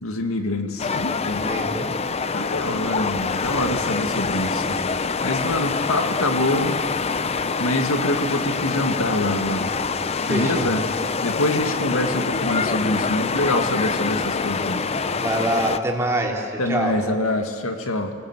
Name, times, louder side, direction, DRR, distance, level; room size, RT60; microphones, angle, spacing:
voice 1, 0.0-1.6 2.3-6.8 7.6-9.7 10.2-10.8 11.2-14.9 16.6-18.1, left 1 dB, 80° left, 5 dB, 2.1 m, -25 dB
sound 1, 0.8-15.8, left 4 dB, 30° left, 0.5 m, -25 dB
voice 2, 1.5-1.9 10.2-10.7 15.1-16.9, right 1 dB, 15° right, -2 dB, 3.3 m, -25 dB
24.0 x 19.0 x 8.1 m, 2.1 s
head